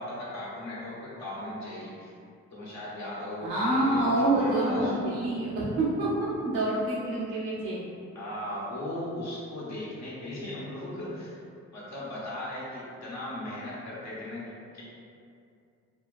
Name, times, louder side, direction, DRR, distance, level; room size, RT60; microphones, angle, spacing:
voice 1, 0.0-2.1 2.5-5.2 8.1-11.4 11.7-14.8, left 1 dB, 55° left, -7 dB, 1.1 m, -37 dB
voice 2, 3.4-7.8, right 1 dB, 85° right, -8 dB, 0.9 m, -27 dB
2.7 x 2.3 x 2.5 m, 2.4 s
supercardioid pair, 50°, 34 cm